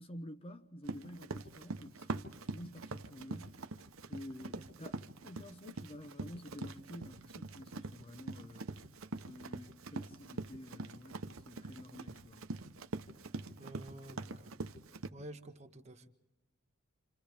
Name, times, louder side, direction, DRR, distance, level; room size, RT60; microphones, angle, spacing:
voice 1, 0.0-3.6 4.1-5.0 5.2-8.8 9.3-12.4, left 1 dB, 25° left, 0.7 m, -50 dB
Run, 0.8-15.1, right 3 dB, 80° right, 0.9 m, -44 dB
voice 2, 13.6-14.5 15.1-16.1, right 1 dB, 35° right, 1.3 m, -50 dB
29.0 x 27.5 x 3.5 m
head